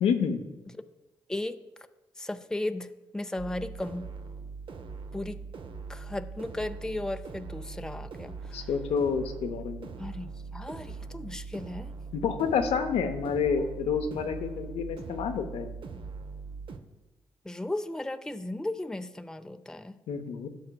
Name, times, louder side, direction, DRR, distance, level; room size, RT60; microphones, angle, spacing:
voice 1, 0.0-0.5 8.5-10.0 12.1-15.8 20.1-20.5, left 6 dB, 75° left, 7 dB, 0.7 m, -29 dB
voice 2, 1.3-1.6 2.2-4.1 5.1-5.4 5.9-8.7 10.0-11.9 17.5-19.9, left 1 dB, 5° left, 10 dB, 0.5 m, -35 dB
sound 1, 3.4-16.8, right 4 dB, 55° right, 0.6 m, -41 dB
12.5 x 6.4 x 2.2 m, 1.0 s
hypercardioid pair, 45°, 10 cm